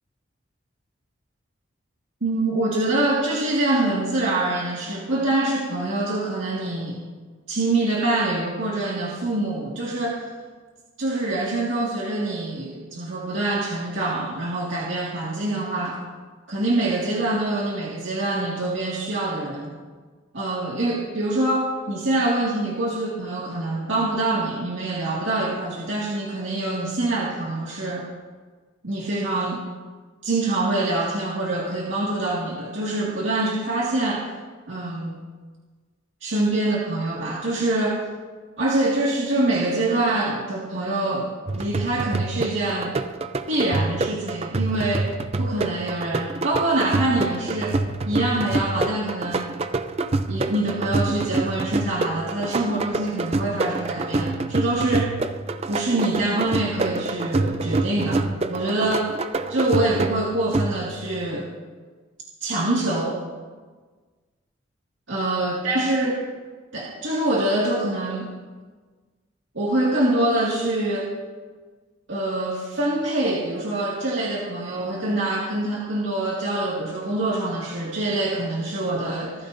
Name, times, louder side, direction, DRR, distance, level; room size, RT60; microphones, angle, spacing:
voice 1, 2.2-7.0 7.5-10.3 11.0-16.0 16.5-19.7 20.3-28.1 28.8-29.6 30.2-34.3 34.7-35.2 36.2-38.0 38.6-43.0 43.5-47.8 48.1-49.5 50.3-55.1 55.7-59.1 59.5-61.5 62.4-63.2 65.1-66.2 66.7-68.3 69.5-71.2 72.1-79.5, right 2 dB, 75° right, -5 dB, 2.1 m, -25 dB
sound 1, 41.5-61.1, right 2 dB, 30° right, 0.5 m, -27 dB
26.0 x 14.0 x 2.7 m, 1.4 s
head